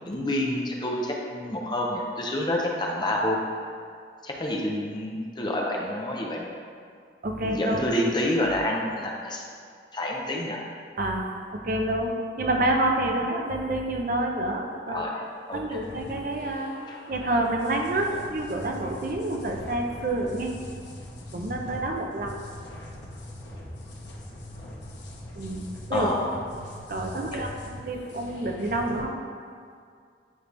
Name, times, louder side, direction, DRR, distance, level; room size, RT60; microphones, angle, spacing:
voice 1, 0.0-3.7 4.2-6.5 7.4-9.5 9.9-10.6 14.9-15.8 16.9-17.0 18.1-18.2 25.9-26.2 27.3-27.5, left 1 dB, 25° left, -1 dB, 0.6 m, -28 dB
voice 2, 7.2-7.8 11.0-11.3 11.5-15.0 15.5-16.7 17.1-20.5 21.3-22.4 25.4-26.1 26.9-29.1, right 1 dB, 50° right, 2 dB, 0.6 m, -28 dB
sound 1, 15.7-29.0, left 1 dB, 80° left, 1.1 m, -42 dB
9.3 x 3.2 x 3.4 m, 2.2 s
head